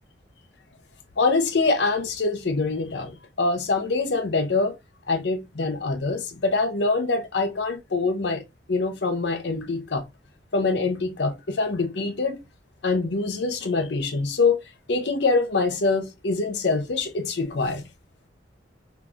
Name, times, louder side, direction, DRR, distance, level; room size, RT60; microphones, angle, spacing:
voice 1, 1.2-4.7 5.1-8.4 8.7-10.0 10.5-12.4 12.8-14.6 14.9-17.8, left 3 dB, 70° left, 0.7 m, -24 dB
3.5 x 2.9 x 2.4 m
head